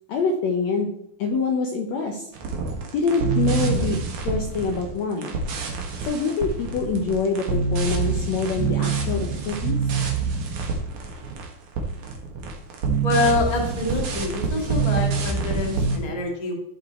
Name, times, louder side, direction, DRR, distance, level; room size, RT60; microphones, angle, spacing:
voice 1, 0.1-0.9 1.2-2.3 2.9-4.0 4.2-5.4 6.0-9.8, left 4 dB, 70° left, 3 dB, 1.7 m, -25 dB
sound 1, 2.3-11.5 11.8-16.0, right 5 dB, 65° right, 2.9 m, -26 dB
voice 2, 13.0-16.5, left 2 dB, 25° left, 0 dB, 0.9 m, -26 dB
14.0 x 5.0 x 4.3 m, 0.75 s
omnidirectional pair, 4.1 m